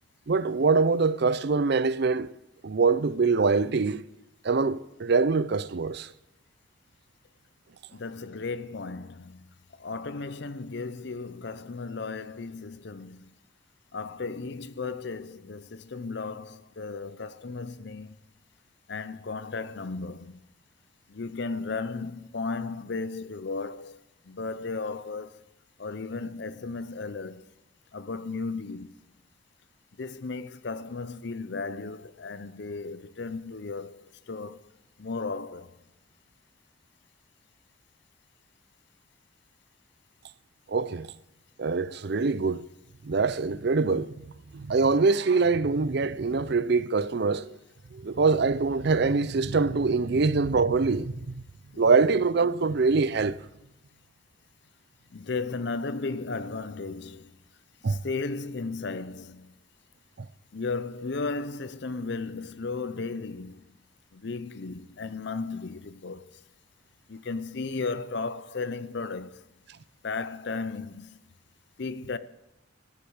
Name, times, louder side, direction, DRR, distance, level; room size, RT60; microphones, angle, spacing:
voice 1, 0.3-2.3 2.6-4.0 4.4-6.1 40.7-41.1 41.6-42.7 43.0-47.6 47.9-51.4 51.8-53.4 57.8-58.0, right 4 dB, 55° right, 0.5 m, -24 dB
voice 2, 7.9-9.4 9.8-13.3 13.9-18.2 18.9-20.4 21.1-24.0 24.3-25.4 25.8-27.4 27.9-28.9 30.0-34.6 35.0-35.7 51.7-51.8 55.1-57.3 57.9-59.5 60.5-63.7 64.1-66.3 67.1-69.4 70.0-71.2 71.8-72.2, left 4 dB, 55° left, 0.6 m, -35 dB
14.0 x 10.0 x 8.0 m
head